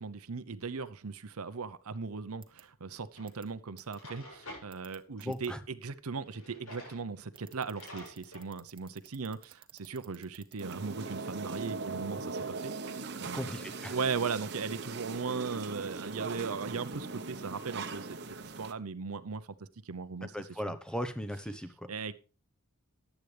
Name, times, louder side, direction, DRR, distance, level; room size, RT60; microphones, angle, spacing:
voice 1, 0.0-1.7 1.9-2.4 2.8-2.9 3.2-4.2 4.6-5.5 5.8-6.2 6.7-7.2 7.5-8.0 8.3-9.4 9.9-10.2 10.5-12.2 13.2-13.5 13.9-16.9 17.4-18.0 18.6-19.4 19.9-20.3 21.9-22.1, right 5 dB, 85° right, 0.8 m, -37 dB
sound 1, 2.4-2.6 3.3-3.4 3.8-4.0 4.7-5.5 7.3-10.8, right 10 dB, 25° right, 1.1 m, -53 dB
Drawer open or close, 3.2-3.3 3.8-4.7 6.2-7.0 7.4-7.5 7.7-8.5, left 1 dB, 80° left, 7.7 m, -48 dB
voice 2, 5.2-5.6 13.3-14.0 20.2-21.9, equal, 5° left, 1.0 m, -37 dB
sound 2, 10.6-18.7, right 3 dB, 50° right, 1.0 m, -40 dB
14.5 x 10.0 x 3.4 m
head